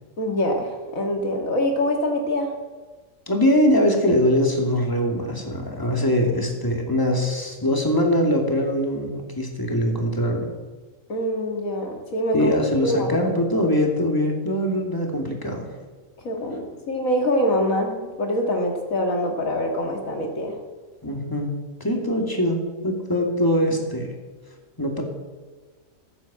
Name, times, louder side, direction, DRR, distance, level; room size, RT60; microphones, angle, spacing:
voice 1, 0.2-2.5 11.1-12.5 12.8-13.1 16.2-20.6, left 1 dB, 90° left, 2 dB, 2.4 m, -24 dB
voice 2, 3.3-10.5 12.3-15.7 21.0-21.5 21.8-24.1 24.8-25.0, equal, 15° left, 1 dB, 2.5 m, -22 dB
15.0 x 8.9 x 7.5 m, 1.3 s
omnidirectional pair, 1.4 m